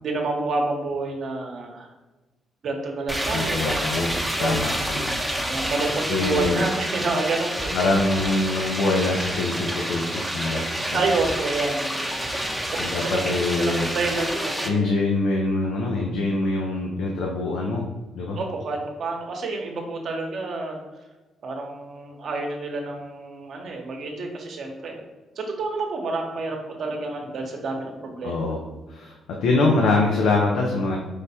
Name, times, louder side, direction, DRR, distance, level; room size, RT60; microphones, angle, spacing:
voice 1, 0.0-1.9 2.6-3.9 4.4-4.5 5.5-7.7 10.9-12.0 12.7-14.9 18.4-20.8 21.4-25.0 25.4-28.4, right 3 dB, 60° right, 2 dB, 0.9 m, -29 dB
sound 1, 3.1-14.7, equal, ahead, 0.6 m, -28 dB
voice 2, 3.3-4.1 4.4-5.1 5.4-5.6 6.1-6.6 7.7-11.0 12.8-13.9 14.6-17.9 18.1-18.4 28.2-31.0, left 2 dB, 85° left, -1 dB, 0.6 m, -24 dB
4.8 x 2.2 x 4.2 m, 1.1 s
cardioid pair, 90°, 0 cm